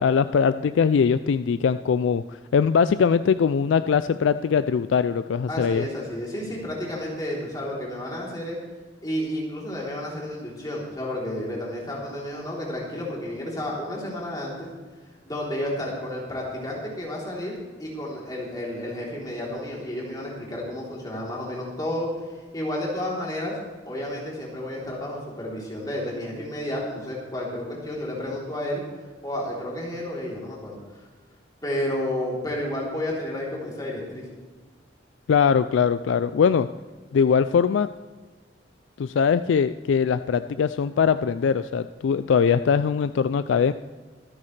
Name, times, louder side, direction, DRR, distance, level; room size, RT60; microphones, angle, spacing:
voice 1, 0.0-5.9 35.3-36.7 37.1-37.9 39.0-43.7, left 6 dB, 80° left, 13 dB, 0.3 m, -21 dB
voice 2, 5.5-8.6 9.0-14.7 15.2-22.2 22.5-23.6 23.8-28.8 29.2-31.0 31.6-34.3, left 1 dB, 20° left, -4 dB, 3.4 m, -31 dB
24.0 x 9.7 x 3.3 m, 1.4 s
head